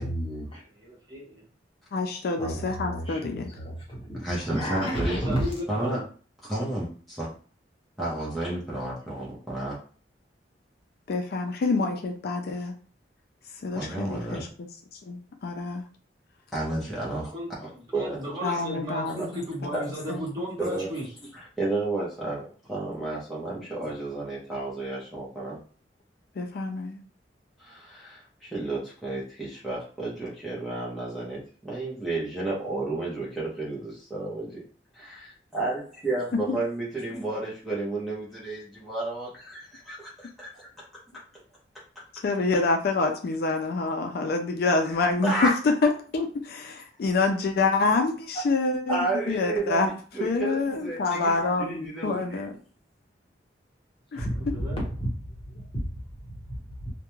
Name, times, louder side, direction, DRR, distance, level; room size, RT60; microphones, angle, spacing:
voice 1, 0.0-0.6 2.4-5.5 54.1-55.1 55.3-56.9, equal, 30° left, -3 dB, 1.0 m, -32 dB
voice 2, 0.8-1.4 5.1-6.0 17.3-17.5 17.9-21.1 54.5-54.8, equal, 25° right, -5 dB, 1.0 m, -35 dB
voice 3, 1.9-3.5 11.1-12.7 13.6-14.5 15.0-15.8 18.4-19.7 20.1-20.2 26.4-27.0 36.5-36.6 42.2-45.3 45.6-49.9 50.2-52.5 54.1-54.3, left 3 dB, 60° left, 4 dB, 0.4 m, -27 dB
voice 4, 4.2-5.2 5.7-6.0 6.5-7.3 8.0-9.8 13.7-14.5 16.5-17.3 17.6-18.3 19.1-19.3 19.7-19.9 20.6-20.9 21.3-25.6 27.6-34.6 34.9-40.8 41.3-41.4 45.2-45.5 48.3-48.4 48.9-52.4, right 2 dB, ahead, -7 dB, 0.6 m, -32 dB
2.3 x 2.1 x 3.0 m, 0.40 s
head